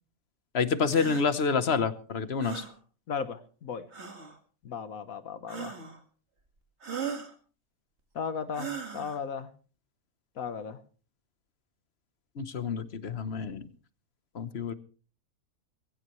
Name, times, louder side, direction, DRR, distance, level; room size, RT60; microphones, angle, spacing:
voice 1, 0.5-2.6 12.4-13.7 14.3-14.7, left 5 dB, 50° left, 13 dB, 1.2 m, -28 dB
sound 1, 0.9-1.3 2.4-2.7 3.9-4.4 5.5-6.0 6.8-7.3 8.5-9.2, right 6 dB, 50° right, 2.2 m, -38 dB
voice 2, 3.1-3.9 4.6-5.8 8.1-9.5 10.4-10.8, left 6 dB, 70° left, 11 dB, 1.5 m, -36 dB
20.5 x 16.5 x 3.1 m, 0.38 s
omnidirectional pair, 1.5 m